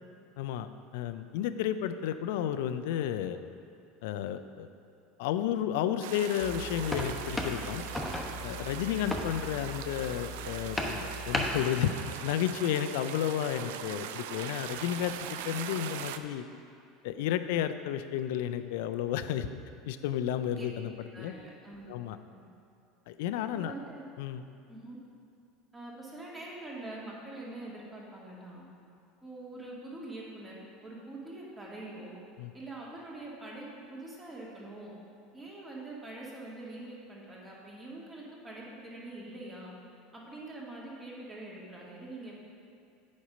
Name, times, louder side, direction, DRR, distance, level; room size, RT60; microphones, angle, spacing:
voice 1, 0.4-3.4 4.0-4.7 5.2-7.8 8.4-12.0 12.2-16.4 17.0-19.5 19.9-20.9 21.2-21.3 21.9-22.2 23.1-23.7 24.2-24.4 32.4-32.5, left 10 dB, 70° left, 11 dB, 0.4 m, -32 dB
sound 1, 6.0-16.2, right 9 dB, 70° right, 0.4 m, -41 dB
sound 2, 6.4-11.7, left 1 dB, 5° left, 1.1 m, -36 dB
voice 2, 21.1-21.9 23.5-24.0 24.7-25.0 25.7-28.6 29.2-32.1 32.5-34.9 35.3-39.7 40.1-42.4, right 2 dB, 20° right, -5 dB, 2.1 m, -44 dB
8.4 x 5.4 x 5.0 m, 2.4 s
hypercardioid pair, 80°, 0 cm